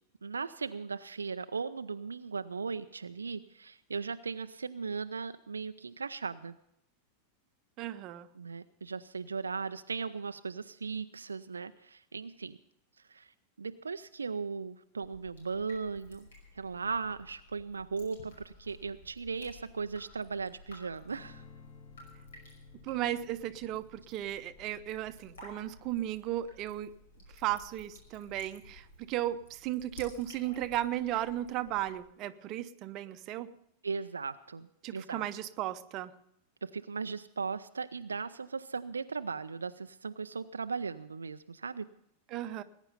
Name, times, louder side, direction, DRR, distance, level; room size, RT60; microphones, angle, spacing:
voice 1, 0.2-6.6 8.3-12.6 13.1-16.3 16.5-21.4 33.8-35.3 36.6-41.8, right 5 dB, 75° right, 10 dB, 0.5 m, -37 dB
voice 2, 7.8-8.3 22.8-26.9 27.3-33.5 34.8-36.1 42.3-42.6, right 13 dB, 40° right, 11 dB, 0.8 m, -35 dB
Drip, 15.0-32.0, left 2 dB, 65° left, 5.4 m, -55 dB
Strum, 21.1-27.5, left 4 dB, 40° left, 6.6 m, -58 dB
20.0 x 9.9 x 5.4 m, 0.78 s
figure-of-eight pair, 90°, 0 cm